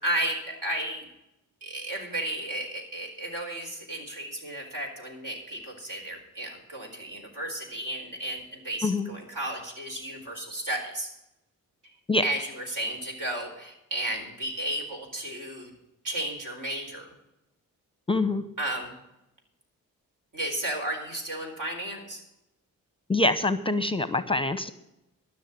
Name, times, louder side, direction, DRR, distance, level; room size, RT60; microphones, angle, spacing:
voice 1, 0.0-1.0 1.6-11.1 12.2-15.7 16.0-17.1 18.6-18.9 20.3-22.2, right 1 dB, 60° right, 1 dB, 4.5 m, -33 dB
voice 2, 18.1-18.4 23.1-24.7, left 2 dB, 15° left, 13 dB, 0.8 m, -25 dB
12.5 x 6.4 x 9.2 m, 0.88 s
supercardioid pair, 45°, 36 cm